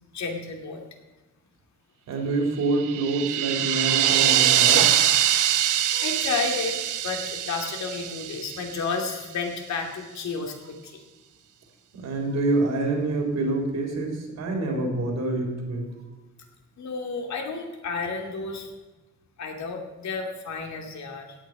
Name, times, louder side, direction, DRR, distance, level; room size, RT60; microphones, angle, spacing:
voice 1, 0.1-0.8 6.0-6.8 7.0-11.0 16.8-18.7 19.4-21.3, left 4 dB, 65° left, 2 dB, 2.6 m, -31 dB
voice 2, 2.1-4.9 5.9-6.1 11.9-15.9, right 2 dB, 60° right, 1 dB, 4.0 m, -26 dB
sound 1, 2.7-8.9, right 11 dB, 85° right, 0.9 m, -23 dB
16.5 x 9.5 x 5.0 m, 1.2 s
wide cardioid pair, 175°, 30 cm